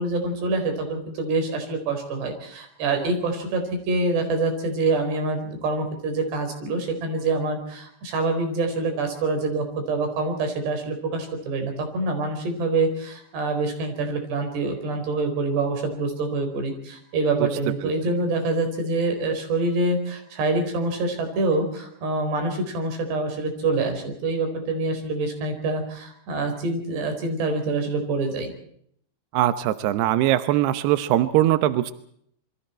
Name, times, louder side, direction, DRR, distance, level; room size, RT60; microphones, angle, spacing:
voice 1, 0.0-28.5, right 3 dB, 60° right, 6 dB, 6.4 m, -26 dB
voice 2, 29.3-31.9, right 13 dB, 75° right, 11 dB, 2.5 m, -21 dB
27.5 x 23.5 x 4.5 m, 0.68 s
omnidirectional pair, 5.7 m